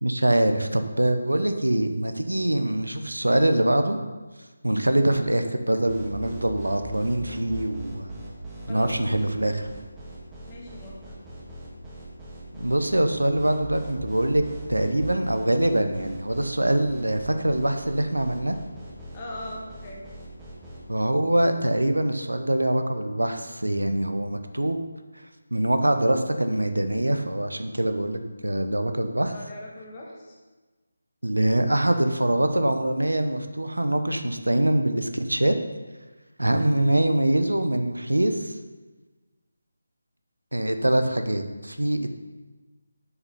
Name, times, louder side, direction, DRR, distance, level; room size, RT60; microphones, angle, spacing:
voice 1, 0.0-4.0 4.6-8.1 8.7-9.7 12.5-14.4 14.7-18.6 20.9-24.8 25.5-29.3 31.2-35.6 36.4-38.6 40.5-42.2, right 1 dB, 85° right, 7 dB, 0.9 m, -24 dB
sound 1, 5.9-20.8, right 2 dB, 10° right, 1.7 m, -40 dB
voice 2, 8.6-9.2 10.5-11.2 19.1-20.0 29.2-30.3, left 1 dB, 25° left, -3 dB, 1.6 m, -40 dB
7.3 x 6.8 x 5.5 m, 1.3 s
figure-of-eight pair, 155°, 0 cm